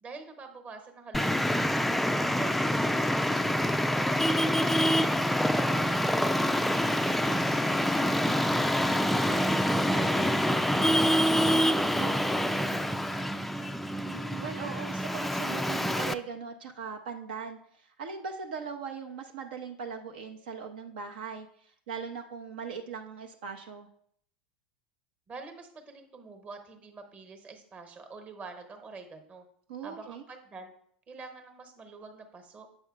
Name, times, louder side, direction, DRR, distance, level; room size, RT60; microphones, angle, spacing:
voice 1, 0.0-3.5 3.9-5.2 5.5-7.8 11.9-13.8 25.3-29.4 29.8-30.7 31.1-32.7, right 4 dB, 30° right, 6 dB, 1.1 m, -47 dB
Traffic noise roadway noise, 1.1-16.1, equal, 5° left, 0.3 m, -26 dB
voice 2, 14.0-21.5 21.9-23.9 29.7-30.2, right 6 dB, 70° right, 4 dB, 0.7 m, -39 dB
7.7 x 5.2 x 2.4 m, 0.65 s
hypercardioid pair, 85°, 5 cm